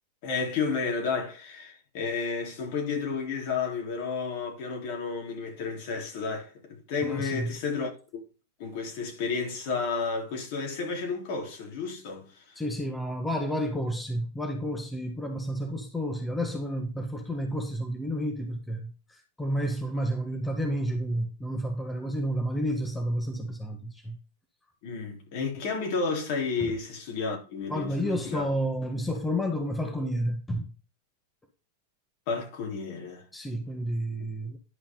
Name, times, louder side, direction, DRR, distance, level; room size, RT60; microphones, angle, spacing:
voice 1, 0.2-8.2 8.6-12.6 24.8-28.5 32.3-33.3 34.2-34.3, left 5 dB, 55° left, 3.7 m, -32 dB
voice 2, 7.0-7.5 12.5-24.2 26.6-26.7 27.7-30.7 33.3-34.6, equal, 10° left, 1.6 m, -31 dB
11.0 x 5.3 x 3.9 m
hypercardioid pair, 115°, 0 cm